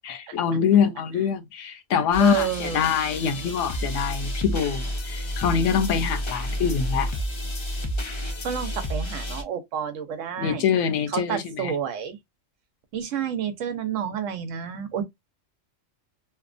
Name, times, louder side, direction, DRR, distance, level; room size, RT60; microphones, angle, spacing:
voice 1, 0.0-7.1 10.4-11.7, left 7 dB, 75° left, 0.9 m, -24 dB
sound 1, 2.1-9.4, equal, 50° left, 0.3 m, -30 dB
voice 2, 2.2-2.9 8.2-10.7 11.1-12.2 12.9-15.0, right 8 dB, 90° right, 1.0 m, -29 dB
2.8 x 2.2 x 2.4 m
omnidirectional pair, 1.3 m